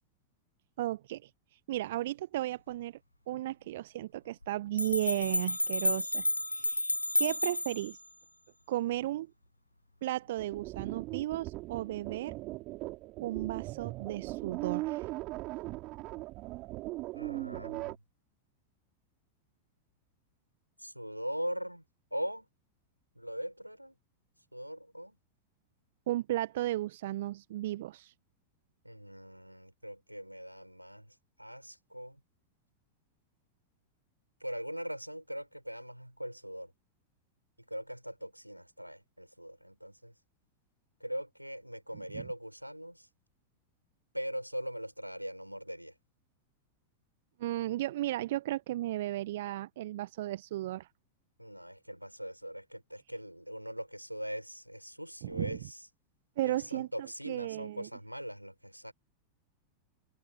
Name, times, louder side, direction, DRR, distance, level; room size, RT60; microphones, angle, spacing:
voice 1, 0.8-1.3 1.7-3.0 3.3-6.2 6.5-6.9 7.2-8.0 8.7-9.3 10.0-12.4 13.2-15.1 26.1-28.1 42.1-42.2 47.4-50.9 55.2-55.6 56.4-57.9, right 15 dB, 55° right, 1.2 m, -34 dB
sound 1, 4.4-4.5 4.8-7.9, left 1 dB, 85° left, 0.9 m, -31 dB
sound 2, 10.4-18.0, right 20 dB, 40° right, 5.1 m, -39 dB
voice 2, 17.1-18.0 20.8-21.8 22.1-22.5 23.2-24.0 24.5-25.2 28.8-32.2 34.4-36.7 37.7-40.1 41.0-43.1 44.1-45.9 51.4-55.9 56.4-58.9, equal, 90° right, 7.2 m, -41 dB
figure-of-eight pair, 90°, 0 cm